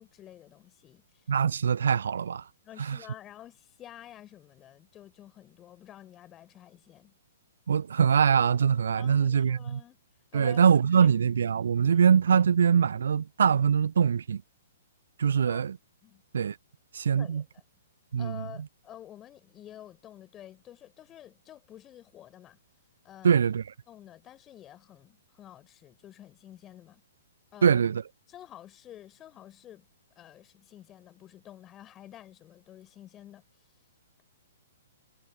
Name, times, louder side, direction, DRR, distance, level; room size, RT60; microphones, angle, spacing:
voice 1, 0.0-1.2 2.6-7.1 9.0-10.0 10.3-11.1 15.5-15.6 16.0-16.2 17.2-17.6 18.2-22.6 23.0-23.4 23.9-27.0 27.5-27.8 28.3-29.9 30.2-33.4, left 12 dB, 20° left, 4.5 m, -50 dB
voice 2, 1.3-2.5 2.8-3.0 7.7-9.8 10.3-14.4 15.2-15.8 16.3-16.6 16.9-17.4 18.1-18.5 23.2-23.6 27.6-28.0, right 7 dB, 60° right, 0.6 m, -23 dB
figure-of-eight pair, 115°, 0 cm